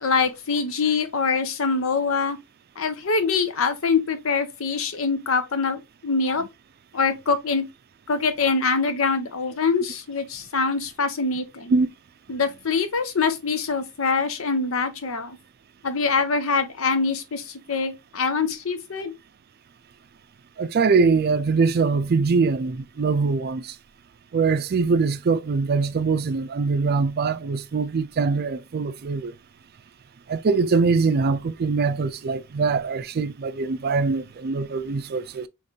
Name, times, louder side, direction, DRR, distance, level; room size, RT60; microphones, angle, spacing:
voice 1, 0.0-2.4 2.8-6.4 6.9-7.7 8.1-11.8 12.3-15.4 15.8-19.1, left 4 dB, 75° left, 0.8 m, -24 dB
voice 2, 20.6-23.7 24.3-29.3 30.3-35.5, right 4 dB, 50° right, 0.4 m, -23 dB
5.1 x 3.1 x 2.7 m
head